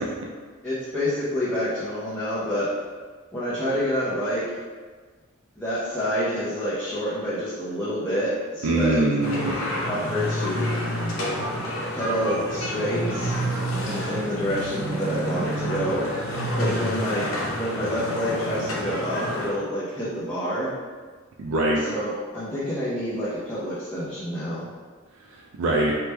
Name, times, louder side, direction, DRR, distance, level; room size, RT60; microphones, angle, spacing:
voice 1, 0.6-2.7 3.3-4.4 5.6-9.0 9.3-10.7 11.9-13.4 13.8-16.0 16.5-20.7 21.8-24.6, equal, 10° left, -12 dB, 0.5 m, -28 dB
voice 2, 8.6-9.6 21.4-21.8 25.3-25.9, right 2 dB, 80° right, -2 dB, 0.3 m, -23 dB
sound 1, 9.2-19.5, equal, 90° left, 0.6 m, -28 dB
3.1 x 2.1 x 3.2 m, 1.5 s
head